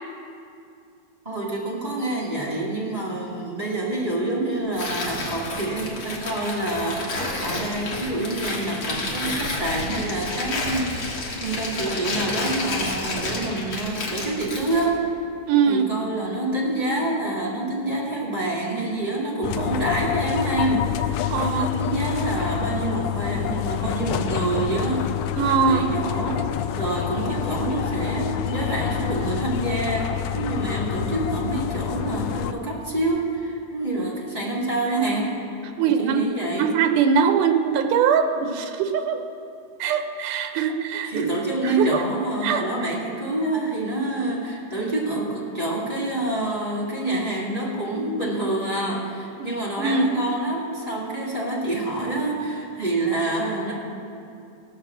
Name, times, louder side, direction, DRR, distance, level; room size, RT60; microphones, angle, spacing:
voice 1, 1.2-15.0 15.6-25.2 25.6-26.4 26.7-35.4 35.8-36.7 41.0-53.7, right 2 dB, 15° right, -6 dB, 1.6 m, -27 dB
Tearing, 4.7-14.9, left 2 dB, 45° left, 1.9 m, -30 dB
voice 2, 15.5-15.9 21.3-21.7 25.4-25.9 35.8-36.2 36.6-39.2 39.8-41.3 41.6-42.0 42.4-42.9 49.4-50.1, right 6 dB, 85° right, 6 dB, 2.3 m, -22 dB
sound 1, 19.4-32.5, left 11 dB, 85° left, 1.5 m, -27 dB
17.0 x 5.8 x 7.3 m, 2.6 s
omnidirectional pair, 3.5 m